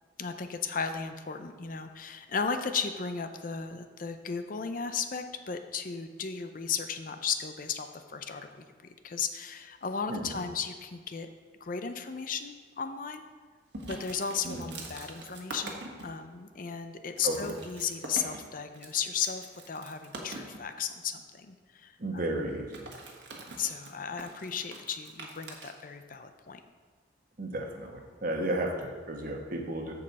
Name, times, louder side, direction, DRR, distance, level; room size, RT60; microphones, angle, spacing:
voice 1, 0.2-11.3 11.6-13.2 13.9-22.2 23.6-26.6, left 6 dB, 50° left, 8 dB, 0.6 m, -35 dB
voice 2, 10.1-10.4 14.4-14.7 17.2-17.5 22.0-22.8 27.4-29.9, right 1 dB, 50° right, 2 dB, 1.3 m, -33 dB
sound 1, 13.7-16.1 16.7-16.8 17.1-20.6 22.5-25.7, right 2 dB, 70° right, 1.5 m, -44 dB
14.0 x 5.4 x 4.1 m, 1.5 s
head